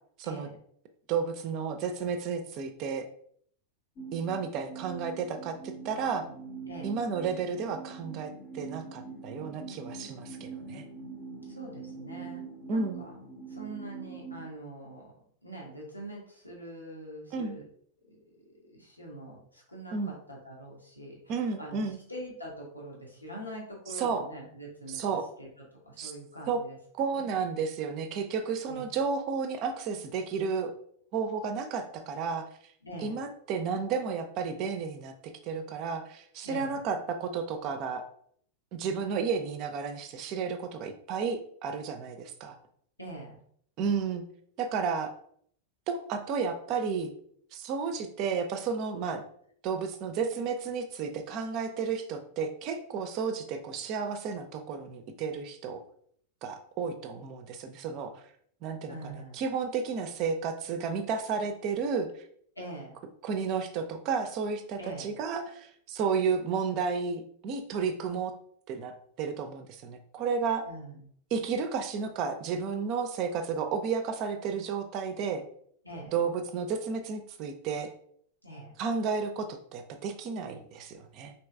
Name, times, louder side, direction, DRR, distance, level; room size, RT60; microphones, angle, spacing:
voice 1, 1.1-3.1 4.1-6.3 6.8-10.8 12.7-13.1 17.3-17.6 19.9-20.1 21.3-22.0 24.0-24.2 24.9-25.2 26.0-26.1 26.5-26.6 26.9-30.7 31.1-32.5 33.0-38.0 38.7-42.6 43.8-44.2 44.6-45.1 45.9-47.1 47.5-49.2 49.6-55.8 56.4-58.1 58.6-62.1 63.2-68.4 68.7-70.6 71.3-75.4 76.1-77.9 78.8-81.3, right 5 dB, 40° right, 7 dB, 0.4 m, -32 dB
sound 1, 4.0-14.5, right 4 dB, 40° left, 0.7 m, -43 dB
voice 2, 11.5-12.4 12.7-13.2 13.5-15.1 15.4-17.7 18.3-25.0 25.4-25.5 25.8-26.8 27.1-27.3 28.7-28.9 32.8-33.2 36.4-36.8 43.0-43.4 58.9-59.4 62.6-63.0 64.8-65.1 70.6-71.1 75.8-76.1 78.4-78.7, right 1 dB, 85° left, -2 dB, 0.9 m, -44 dB
3.1 x 2.8 x 3.3 m, 0.63 s
figure-of-eight pair, 90°, 0 cm